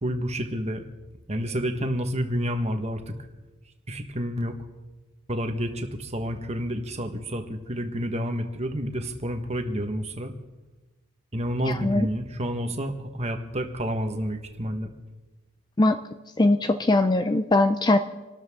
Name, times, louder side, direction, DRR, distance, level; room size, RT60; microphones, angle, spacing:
voice 1, 0.0-0.8 1.3-3.1 3.9-4.5 5.3-10.3 11.3-14.9, equal, 30° right, 5 dB, 1.4 m, -29 dB
voice 2, 16.4-18.0, left 2 dB, 20° left, 9 dB, 0.4 m, -20 dB
26.5 x 13.0 x 3.7 m, 1.2 s
head